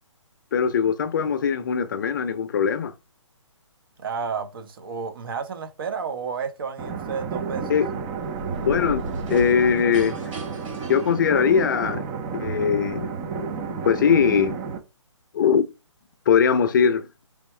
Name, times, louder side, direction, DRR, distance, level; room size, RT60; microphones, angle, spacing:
voice 1, 0.5-2.9 7.7-7.9 8.7-9.0 9.3-10.2 10.9-12.1 12.4-13.5 13.8-14.6 15.3-15.6 16.3-17.1, left 7 dB, 40° left, 0.5 m, -21 dB
voice 2, 4.0-7.7, right 6 dB, 45° right, 1.0 m, -31 dB
sound 1, 6.8-14.8, right 6 dB, 10° right, 0.3 m, -31 dB
sound 2, 7.9-11.9, right 1 dB, 80° right, 2.3 m, -37 dB
4.5 x 3.4 x 3.1 m
hypercardioid pair, 150°, 16 cm